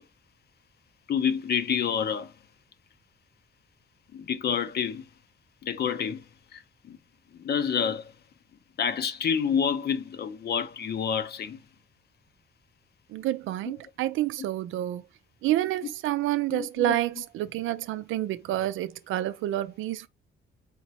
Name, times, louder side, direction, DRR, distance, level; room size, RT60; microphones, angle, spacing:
voice 1, 1.1-2.3 4.1-5.1 5.6-6.3 6.5-7.0 7.3-8.1 8.8-11.6 13.6-13.7 16.5-17.0, left 7 dB, 55° left, 0.7 m, -28 dB
voice 2, 13.1-15.0 15.4-20.1, right 14 dB, 85° right, 0.5 m, -28 dB
4.3 x 2.9 x 2.8 m
cardioid pair, 90°, 20 cm